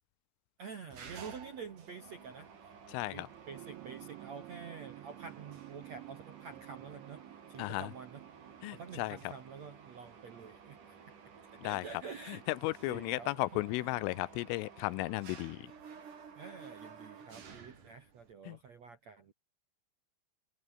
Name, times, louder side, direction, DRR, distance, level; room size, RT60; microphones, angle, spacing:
voice 1, 0.6-2.7 3.1-7.2 7.5-8.2 8.7-11.0 11.5-12.4 12.9-14.0 16.3-19.3, right 5 dB, 60° right, 1.9 m, -48 dB
Mechanisms, 0.9-18.3, right 6 dB, 40° right, 4.8 m, -53 dB
voice 2, 2.9-3.3 7.6-7.9 8.6-9.2 11.6-11.8 12.3-15.7 18.5-18.6, left 20 dB, 80° left, 3.2 m, -35 dB
sound 1, 3.2-11.9 13.1-13.2, right 19 dB, 80° right, 2.7 m, -53 dB
omnidirectional pair, 6.0 m